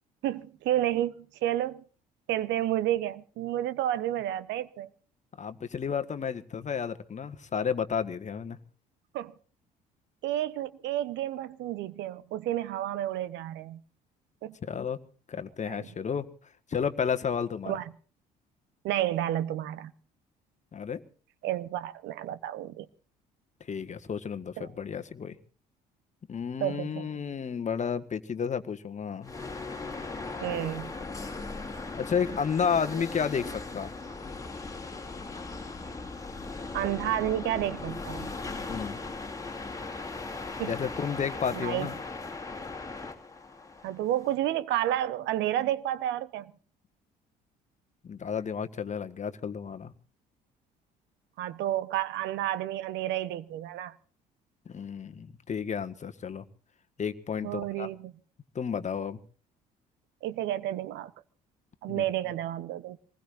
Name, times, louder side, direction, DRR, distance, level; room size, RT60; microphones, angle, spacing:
voice 1, 0.2-1.8 2.3-4.9 9.1-9.3 10.2-13.8 14.4-14.5 15.6-15.9 17.7-17.9 18.8-19.9 21.4-22.9 24.6-24.7 26.6-27.1 30.4-30.9 33.0-33.1 36.7-38.3 40.6-40.7 41.5-41.9 43.8-46.5 51.4-53.9 57.4-58.1 60.2-61.1 61.8-63.0, right 13 dB, 65° right, 1.0 m, -31 dB
voice 2, 5.4-8.6 14.6-15.0 15.3-16.3 16.7-17.8 20.7-21.0 23.7-25.4 26.3-29.3 31.9-33.9 38.7-39.0 40.7-41.9 48.0-49.9 54.6-56.4 57.0-57.9 58.5-59.2 61.9-62.0, left 6 dB, 35° left, 1.6 m, -32 dB
sound 1, 29.2-44.4, left 3 dB, 15° left, 3.0 m, -38 dB
25.5 x 20.0 x 2.6 m
hypercardioid pair, 55°, 20 cm